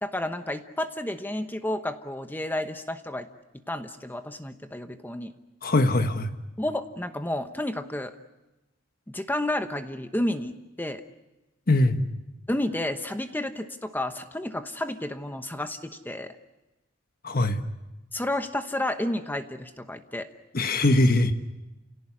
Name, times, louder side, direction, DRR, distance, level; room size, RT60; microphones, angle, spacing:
voice 1, 0.0-3.3 3.7-5.3 6.6-8.1 9.1-11.0 12.5-16.4 18.1-20.3, left 1 dB, 10° left, 8 dB, 1.0 m, -31 dB
voice 2, 5.6-6.3 11.7-12.0 17.2-17.6 20.5-21.3, left 2 dB, 45° left, 8 dB, 1.3 m, -21 dB
29.5 x 17.5 x 9.8 m, 1.0 s
head